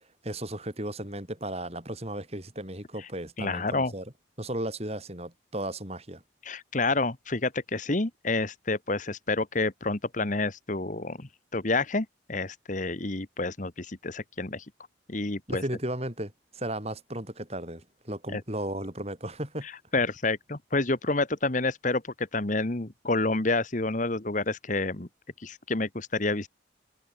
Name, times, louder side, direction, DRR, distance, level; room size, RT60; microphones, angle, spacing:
voice 1, 0.2-4.1 4.4-6.2 15.5-19.7, right 1 dB, 35° right, 7.5 m, -35 dB
voice 2, 3.4-3.9 6.4-14.6 15.1-15.6 18.3-18.4 19.9-25.1 25.4-26.5, left 3 dB, 45° left, 1.4 m, -29 dB
head